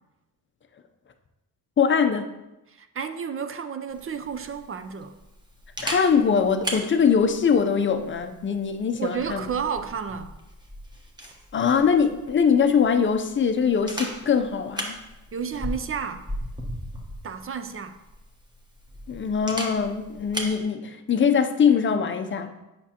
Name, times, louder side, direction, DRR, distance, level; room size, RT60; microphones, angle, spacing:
voice 1, 1.8-2.3 5.8-9.4 11.5-15.0 19.1-22.5, left 6 dB, 30° left, 8 dB, 0.6 m, -22 dB
voice 2, 2.7-5.2 9.0-10.3 15.3-16.3 17.2-18.0, right 7 dB, 35° right, 9 dB, 0.4 m, -31 dB
Camera, 3.9-20.6, equal, 10° right, 1.1 m, -38 dB
8.2 x 6.1 x 2.9 m, 0.98 s
cardioid pair, 120°, 39 cm